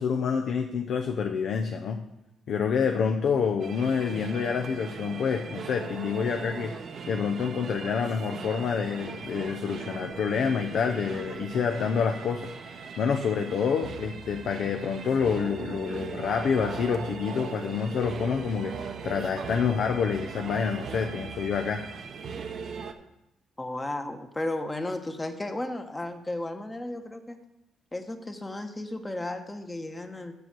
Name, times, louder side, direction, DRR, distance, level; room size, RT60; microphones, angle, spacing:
voice 1, 0.0-2.0 2.5-21.8, left 6 dB, 65° left, 5 dB, 0.6 m, -28 dB
sound 1, 3.6-22.9, right 5 dB, 60° right, 0.7 m, -39 dB
voice 2, 23.6-27.4 27.9-30.3, left 1 dB, 20° left, 7 dB, 1.1 m, -34 dB
6.9 x 6.6 x 6.1 m, 0.91 s
supercardioid pair, 70°, 0 cm